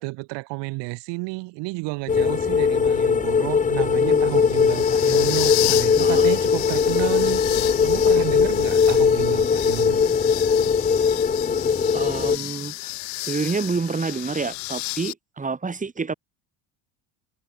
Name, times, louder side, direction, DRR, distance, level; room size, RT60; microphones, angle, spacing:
voice 1, 0.0-10.1, right 25 dB, 70° right, 6.3 m, -31 dB
sound 1, 2.0-15.1, left 31 dB, 85° left, 2.2 m, -32 dB
sound 2, 2.1-12.4, left 6 dB, 15° left, 1.1 m, -20 dB
voice 2, 6.0-6.3 11.9-12.9 13.2-16.1, right 4 dB, 15° right, 6.9 m, -28 dB
cardioid pair, 125°, 44 cm